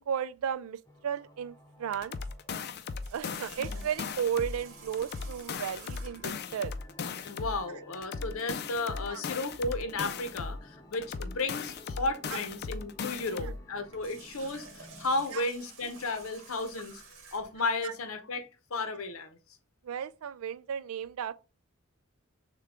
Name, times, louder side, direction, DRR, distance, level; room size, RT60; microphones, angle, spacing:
voice 1, 0.0-2.2 3.1-6.7 9.1-9.2 12.3-12.4 13.2-13.5 15.3-15.4 17.8-17.9 19.8-21.3, right 8 dB, 90° right, 0.4 m, -34 dB
sound 1, 0.8-15.2, left 1 dB, 15° left, 0.7 m, -54 dB
sound 2, 1.9-4.6 4.9-7.6 7.9-10.6 10.9-13.6, left 5 dB, 50° left, 0.4 m, -37 dB
Water tap faucet, 3.0-6.4 13.8-17.6, right 4 dB, 65° right, 1.3 m, -51 dB
voice 2, 7.2-17.0 17.3-19.4, left 2 dB, 90° left, 0.8 m, -34 dB
6.6 x 2.3 x 3.6 m
head